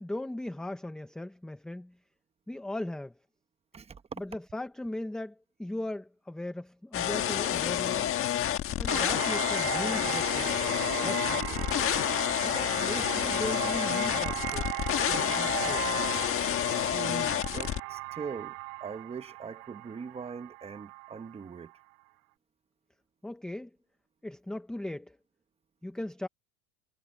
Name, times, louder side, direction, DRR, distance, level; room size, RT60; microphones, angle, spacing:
voice 1, 0.0-2.0 2.5-3.1 4.2-8.1 8.8-10.5 11.0-11.5 12.4-14.7 15.1-15.9 23.2-23.7 24.2-25.2 25.8-26.3, left 1 dB, ahead, 0.5 m, -38 dB
voice 2, 3.7-4.2 16.8-21.7, right 6 dB, 15° right, 1.0 m, -41 dB
sound 1, 6.9-17.8, left 11 dB, 30° left, 1.4 m, -29 dB
sound 2, 8.9-21.5, right 32 dB, 65° right, 3.4 m, -37 dB
supercardioid pair, 155°, 43 cm